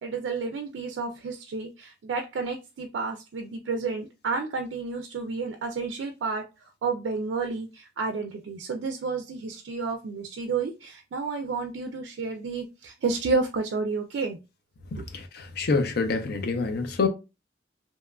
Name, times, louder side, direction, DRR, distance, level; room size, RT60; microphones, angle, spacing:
voice 1, 0.0-14.4 15.0-15.1, right 4 dB, 75° right, 0.3 m, -31 dB
voice 2, 15.1-17.1, left 4 dB, 60° left, 0.5 m, -26 dB
2.9 x 2.2 x 2.2 m
head